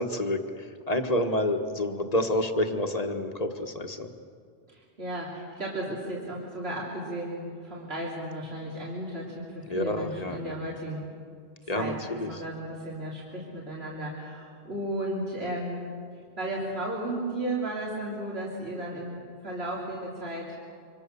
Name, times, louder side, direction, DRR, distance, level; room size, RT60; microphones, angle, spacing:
voice 1, 0.0-4.1 9.7-10.8 11.7-12.3, left 1 dB, 35° left, 5 dB, 1.5 m, -29 dB
voice 2, 4.7-11.0 11.6-12.0 12.3-15.8 16.4-20.6, right 1 dB, 60° right, -4 dB, 3.6 m, -34 dB
26.5 x 25.5 x 6.9 m, 2.3 s
omnidirectional pair, 1.2 m